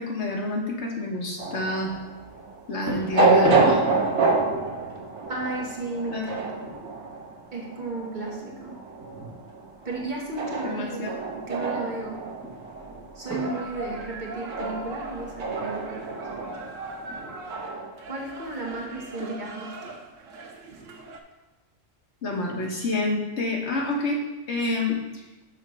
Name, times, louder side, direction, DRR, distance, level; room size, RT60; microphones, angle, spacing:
voice 1, 0.0-1.9 2.7-3.8 6.1-6.3 10.6-11.1 19.2-19.5 22.2-24.2 24.5-25.0, left 2 dB, 65° left, -1 dB, 1.5 m, -28 dB
sound 1, 1.4-17.9, right 3 dB, 65° right, 1.2 m, -28 dB
sound 2, 1.8-17.7, equal, 15° right, 1.6 m, -40 dB
voice 2, 5.3-6.6 7.5-8.8 9.8-11.1 11.5-12.2 13.1-16.7 18.1-20.0 20.7-20.9, right 2 dB, 40° right, -1 dB, 1.3 m, -34 dB
sound 3, 13.3-21.2, right 2 dB, 85° right, 1.2 m, -40 dB
6.4 x 4.3 x 6.3 m, 1.1 s
omnidirectional pair, 1.3 m